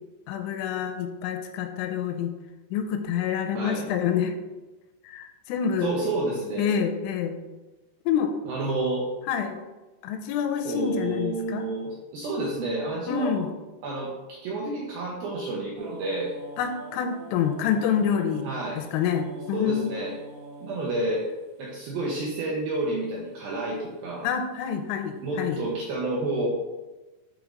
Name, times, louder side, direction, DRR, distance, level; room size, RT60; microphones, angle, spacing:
voice 1, 0.3-2.3 2.7-4.4 5.0-5.9 6.6-7.4 8.1-8.3 9.3-9.6 10.0-11.6 13.1-13.5 16.6-18.5 18.8-20.0 24.2-25.6, left 8 dB, 85° left, 7 dB, 3.0 m, -27 dB
voice 2, 3.5-3.9 5.8-6.8 8.4-9.1 10.6-13.4 13.8-14.1 14.4-16.3 18.4-18.8 19.5-20.1 20.6-21.3 21.6-24.3 25.2-26.5, right 2 dB, 85° right, -3 dB, 2.1 m, -29 dB
sound 1, 15.7-22.7 23.5-23.9 24.2-25.5, right 1 dB, 60° right, 1.9 m, -45 dB
8.3 x 3.5 x 5.1 m, 1.1 s
omnidirectional pair, 5.6 m